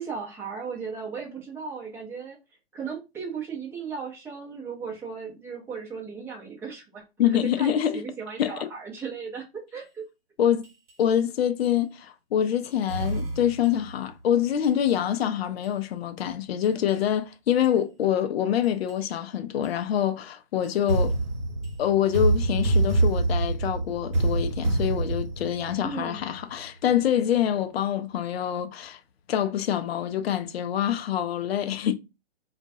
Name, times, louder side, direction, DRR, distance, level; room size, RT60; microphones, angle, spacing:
voice 1, 0.0-2.4 2.7-7.0 7.6-9.4 9.7-10.0 25.8-26.2, right 5 dB, 10° right, 0.6 m, -36 dB
voice 2, 7.2-8.0 8.4-8.7 10.4-10.7 11.0-21.1 21.8-29.0 29.3-31.9, left 10 dB, 65° left, 0.5 m, -25 dB
sound 1, 10.6-10.9 11.6-11.7 12.6-13.9 14.6-14.9 15.6-15.7 16.6-16.9 17.6-17.7 18.6-18.9 19.6-19.7 20.6-26.4, right 2 dB, 60° right, 0.9 m, -26 dB
2.3 x 2.1 x 2.6 m
hypercardioid pair, 130°, 33 cm